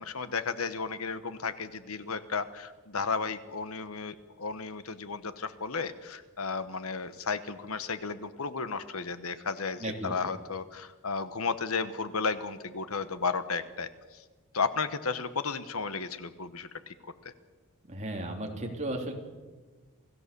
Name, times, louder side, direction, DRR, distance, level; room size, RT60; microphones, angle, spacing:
voice 1, 0.0-14.2 14.5-17.3, left 4 dB, 70° left, 12 dB, 1.2 m, -34 dB
voice 2, 9.8-10.3 17.9-19.1, right 1 dB, 35° right, 1 dB, 3.4 m, -35 dB
28.0 x 17.0 x 6.9 m, 1.3 s
head